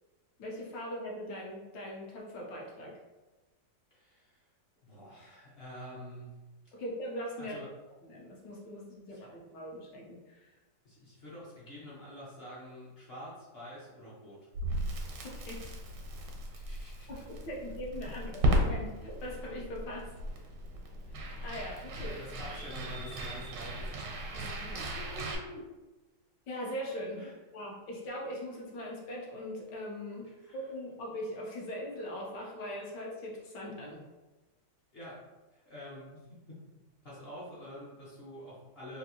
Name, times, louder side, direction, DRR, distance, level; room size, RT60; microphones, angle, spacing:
voice 1, 0.4-3.0 6.7-7.6 8.0-10.5 15.2-15.6 17.1-20.1 21.1-22.2 24.3-24.8 26.5-27.2 27.5-30.3 30.5-34.0, equal, 80° left, -3 dB, 1.4 m, -41 dB
voice 2, 3.9-4.5 4.8-6.8 7.4-7.7 9.1-9.3 10.8-14.5 16.5-17.2 18.0-18.3 21.9-24.0 24.6-25.7 27.1-27.3 30.2-30.6 34.9-36.6 37.0-39.0, equal, 50° left, -7 dB, 0.7 m, -47 dB
Crackle, 14.5-25.4, equal, 85° right, 1.3 m, -35 dB
3.5 x 2.5 x 2.7 m, 1.1 s
omnidirectional pair, 1.9 m